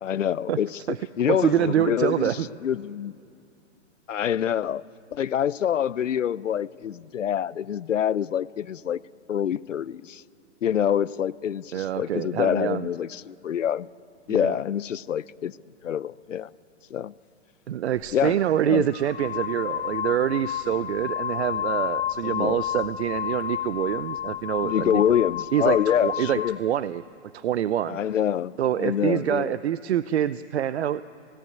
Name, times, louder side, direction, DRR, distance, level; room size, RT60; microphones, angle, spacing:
voice 1, 0.0-0.8 1.2-3.1 4.1-4.8 5.1-9.0 9.3-10.2 10.6-13.9 14.3-15.6 15.8-16.5 16.9-17.1 18.1-18.4 18.6-18.9 22.2-22.6 24.6-26.6 27.9-29.6, left 9 dB, 90° left, 19 dB, 0.8 m, -26 dB
voice 2, 1.3-2.5 11.7-12.9 14.3-14.6 17.7-25.0 25.5-27.0 27.3-28.0 28.6-31.0, right 10 dB, 60° right, 15 dB, 0.7 m, -26 dB
sound 1, 18.0-18.1 18.9-26.6, left 10 dB, 60° left, 1.4 m, -31 dB
28.0 x 18.0 x 9.3 m, 2.6 s
hypercardioid pair, 145°, 37 cm